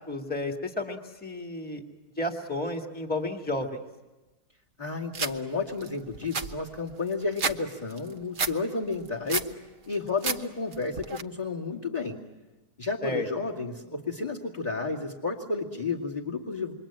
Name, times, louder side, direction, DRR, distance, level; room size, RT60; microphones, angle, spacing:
voice 1, 0.1-1.8 2.2-3.8 13.0-13.3, left 2 dB, 5° left, 3 dB, 2.1 m, -32 dB
voice 2, 4.8-9.5 9.9-12.2 12.8-16.7, left 4 dB, 25° left, 0 dB, 2.5 m, -32 dB
sound 1, 5.1-5.3 5.8-5.9 6.1-7.6 7.9-8.5 8.9-9.5 9.9-10.4 10.7-11.2, right 4 dB, 35° right, 1.1 m, -30 dB
28.0 x 23.5 x 8.9 m, 1.1 s
omnidirectional pair, 1.8 m